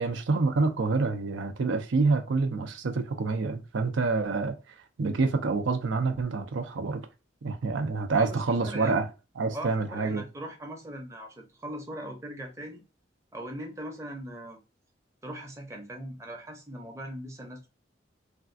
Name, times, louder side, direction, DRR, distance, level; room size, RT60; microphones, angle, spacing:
voice 1, 0.0-4.6 5.0-7.0 7.4-9.1 9.4-10.2, right 3 dB, 75° right, 0.5 m, -27 dB
voice 2, 8.2-9.0 9.5-12.8 13.3-14.6 15.2-17.7, right 1 dB, 15° right, 0.6 m, -40 dB
3.4 x 2.4 x 2.5 m
head